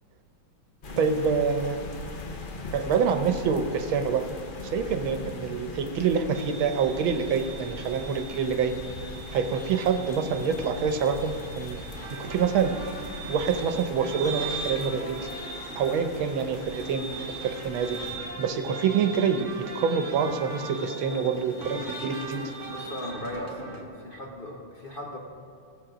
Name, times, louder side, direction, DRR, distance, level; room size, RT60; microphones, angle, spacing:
sound 1, 0.8-18.2, left 3 dB, 80° left, 0.4 m, -41 dB
voice 1, 1.0-1.8 2.7-4.3 4.7-8.7 9.3-11.8 12.2-12.7 13.3-15.2 15.8-18.0 18.4-22.4, right 6 dB, 80° right, 7 dB, 1.6 m, -26 dB
sound 2, 6.3-23.1, right 3 dB, 5° left, 0.6 m, -42 dB
sound 3, 12.0-23.8, right 3 dB, 40° right, 1.3 m, -41 dB
voice 2, 22.7-25.2, left 1 dB, 40° left, 0 dB, 0.8 m, -38 dB
16.5 x 7.8 x 5.0 m, 2.6 s
omnidirectional pair, 2.2 m